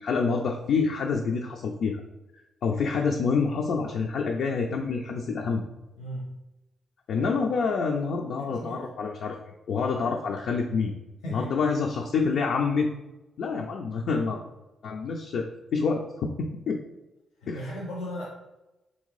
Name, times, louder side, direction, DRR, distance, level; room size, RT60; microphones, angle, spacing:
voice 1, 0.0-2.0 2.6-5.6 7.1-9.4 9.7-10.9 11.3-12.9 13.4-14.4 14.8-15.5 15.7-16.8 17.5-17.7, left 5 dB, 70° left, 1 dB, 0.3 m, -27 dB
voice 2, 6.0-6.3 8.4-8.8 11.2-11.5 17.4-18.2, equal, 85° left, -6 dB, 0.8 m, -36 dB
3.4 x 2.6 x 3.1 m, 1.0 s
hypercardioid pair, 45°, 0 cm